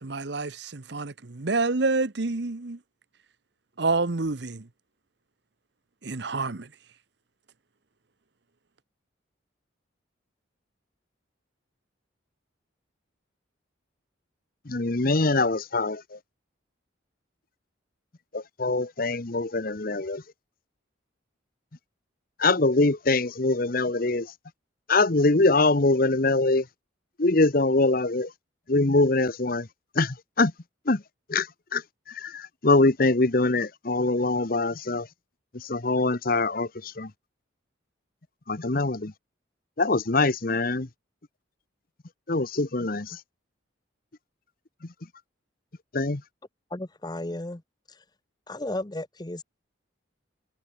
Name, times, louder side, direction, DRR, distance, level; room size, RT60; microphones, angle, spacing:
voice 1, 0.0-2.8 3.8-4.7 6.0-6.7, right 3 dB, 60° right, 1.0 m, -28 dB
voice 2, 14.7-16.2 18.3-20.2 22.4-24.3 24.9-26.6 27.2-28.3 28.7-29.7 29.9-30.5 30.9-31.0 31.3-31.5 31.7-31.8 32.1-35.1 35.6-37.1 38.5-39.1 39.8-40.9 42.3-43.2 45.9-46.2, left 2 dB, 45° left, 1.0 m, -23 dB
voice 3, 46.7-47.6 47.9-48.0 48.5-49.4, left 1 dB, 20° left, 0.8 m, -34 dB
head